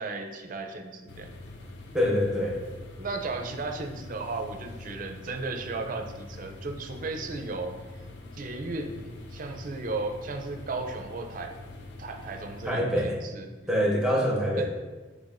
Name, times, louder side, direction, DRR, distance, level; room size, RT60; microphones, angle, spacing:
voice 1, 0.0-1.3 3.0-7.7 8.3-11.5 12.0-13.5 14.6-14.7, right 3 dB, 50° right, 5 dB, 0.5 m, -35 dB
sound 1, 1.1-12.7, left 2 dB, 70° left, 0.5 m, -44 dB
voice 2, 1.9-2.6 12.6-13.2 13.7-14.7, equal, 5° right, -3 dB, 0.7 m, -25 dB
6.4 x 3.3 x 2.5 m, 1.3 s
head